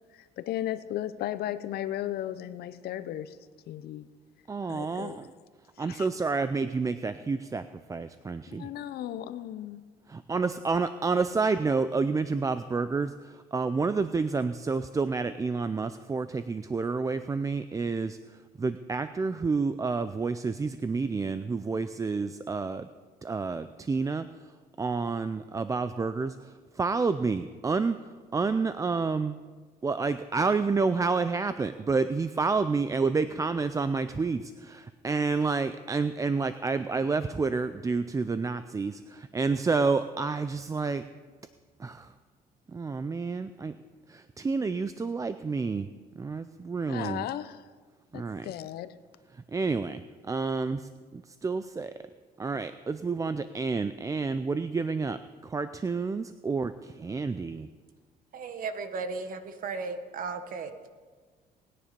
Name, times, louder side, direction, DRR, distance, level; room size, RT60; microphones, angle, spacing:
voice 1, 0.1-3.4 3.7-4.1 4.7-5.2 5.8-6.1 8.5-9.8 46.9-47.6 48.1-48.9, left 12 dB, 70° left, 0.7 m, -35 dB
voice 2, 4.5-5.3 5.8-8.7 10.3-18.2 18.6-22.9 23.2-24.3 24.8-26.5 26.8-28.0 28.3-29.4 29.8-41.0 41.8-42.1 42.7-43.7 44.1-45.9 46.2-47.2 48.1-48.5 49.5-50.0 50.3-51.9 52.4-57.7, right 4 dB, 20° right, 0.5 m, -29 dB
voice 3, 58.3-60.9, right 4 dB, 55° right, 1.4 m, -36 dB
19.5 x 10.0 x 5.2 m
cardioid pair, 110°, 17 cm